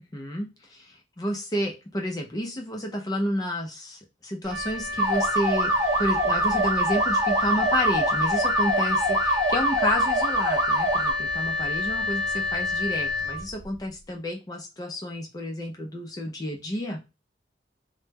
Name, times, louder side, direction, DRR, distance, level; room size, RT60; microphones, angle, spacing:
voice 1, 0.0-5.7 6.0-17.0, left 1 dB, 20° left, 1 dB, 0.4 m, -30 dB
Wind instrument woodwind instrument, 4.4-13.9, left 2 dB, 80° right, 0.4 m, -29 dB
sound 1, 5.0-11.1, right 1 dB, 20° right, 0.7 m, -24 dB
2.1 x 2.0 x 3.3 m, 0.28 s
head